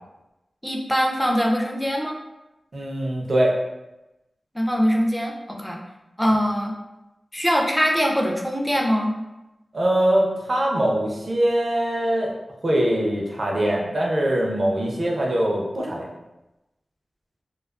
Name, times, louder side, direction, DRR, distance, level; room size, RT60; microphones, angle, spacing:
voice 1, 0.6-2.2 4.5-5.8 6.2-6.7 7.3-9.1, equal, 5° left, 0 dB, 0.4 m, -22 dB
voice 2, 2.7-3.6 9.7-12.3 12.6-16.1, right 1 dB, 55° right, -2 dB, 0.6 m, -22 dB
2.4 x 2.3 x 2.3 m, 0.98 s
wide cardioid pair, 60°, 0 cm